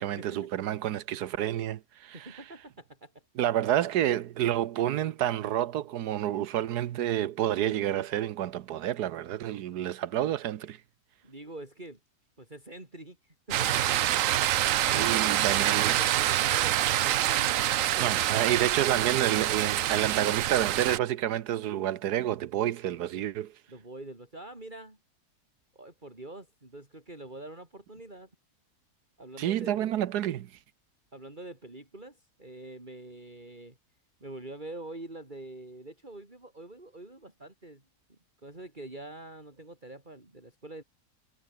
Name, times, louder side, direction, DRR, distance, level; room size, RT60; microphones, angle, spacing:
voice 1, 0.0-2.4 3.4-10.8 14.9-16.0 18.0-23.5 29.4-30.5, right 12 dB, 85° right, 1.4 m, -29 dB
voice 2, 2.1-3.1 11.2-12.0 12.4-14.2 14.9-15.2 15.5-18.2 23.7-25.0 25.7-28.3 29.2-30.0 31.1-33.8 34.2-37.8 38.1-40.8, right 2 dB, 30° right, 4.5 m, -45 dB
sound 1, 13.5-21.0, right 12 dB, 65° right, 1.0 m, -26 dB
omnidirectional pair, 1.7 m